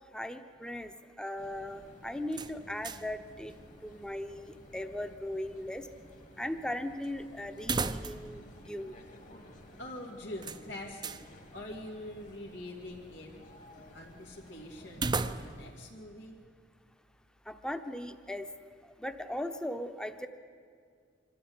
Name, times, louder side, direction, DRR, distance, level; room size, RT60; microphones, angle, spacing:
voice 1, 0.1-0.9 1.2-3.5 3.8-5.9 6.4-9.0 17.5-18.5 19.0-20.3, left 1 dB, 5° left, 8 dB, 0.9 m, -38 dB
sound 1, 1.4-15.5, left 1 dB, 45° left, 2.1 m, -54 dB
sound 2, 2.3-3.2 3.5-3.6 7.6-8.4 8.7-8.8 10.4-11.3 14.9-15.8, right 4 dB, 25° right, 0.6 m, -35 dB
voice 2, 9.8-11.1 11.5-13.3 13.9-16.4, left 1 dB, 85° left, -3 dB, 2.7 m, -44 dB
25.0 x 13.0 x 9.6 m, 2.1 s
head